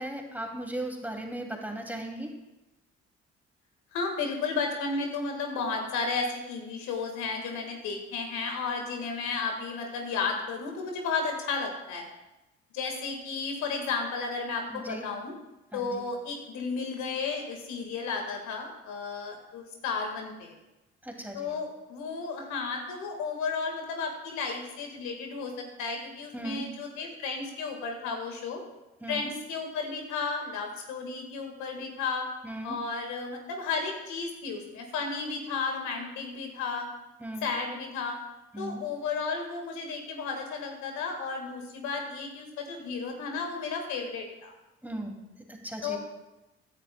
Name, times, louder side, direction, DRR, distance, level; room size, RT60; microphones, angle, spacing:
voice 1, 0.0-2.3 14.7-15.0 15.7-16.0 21.0-21.5 26.3-26.7 29.0-29.3 32.4-32.8 37.2-37.5 38.5-38.8 44.8-45.1 45.5-46.0, right 1 dB, 5° right, 1 dB, 2.4 m, -37 dB
voice 2, 3.9-12.0 12.7-15.3 15.7-20.5 21.3-28.6 29.1-32.3 32.6-36.9 37.4-38.2 38.6-44.5 45.8-46.0, left 4 dB, 75° left, 3 dB, 1.7 m, -33 dB
15.5 x 9.9 x 2.2 m, 0.98 s
hypercardioid pair, 50°, 29 cm